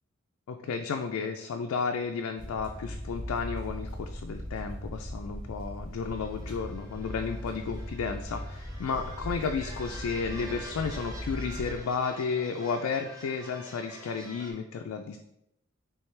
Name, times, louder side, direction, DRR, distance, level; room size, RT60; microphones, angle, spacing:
voice 1, 0.5-15.2, left 5 dB, 80° left, 4 dB, 0.3 m, -33 dB
sound 1, 2.4-11.8, equal, 65° right, 1.6 m, -39 dB
sound 2, 6.0-14.5, equal, 15° right, 0.6 m, -47 dB
4.6 x 3.3 x 3.2 m, 0.82 s
head